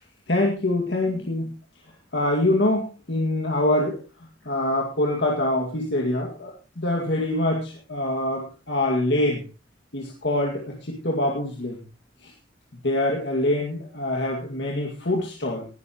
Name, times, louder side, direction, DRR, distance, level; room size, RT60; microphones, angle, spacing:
voice 1, 0.3-1.5 2.1-4.0 4.5-9.4 9.9-11.8 12.8-15.7, left 1 dB, 65° left, 0 dB, 2.2 m, -24 dB
19.0 x 12.0 x 3.0 m, 0.32 s
head